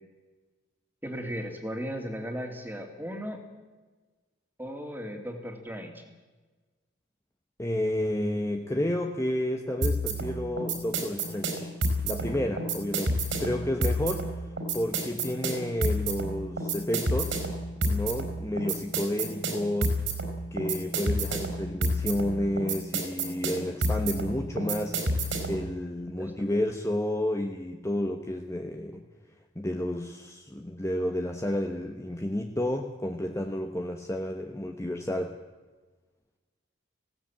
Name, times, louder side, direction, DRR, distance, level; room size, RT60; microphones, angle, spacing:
voice 1, 1.0-3.4 4.6-6.0 26.2-26.7, equal, 10° right, 4 dB, 2.7 m, -37 dB
voice 2, 7.6-11.7 12.0-17.5 17.8-20.0 20.5-29.0 29.5-35.4, left 1 dB, 15° left, 3 dB, 1.1 m, -31 dB
sound 1, 9.8-25.7, right 1 dB, 75° right, 4.9 m, -29 dB
19.0 x 17.0 x 8.8 m, 1.3 s
head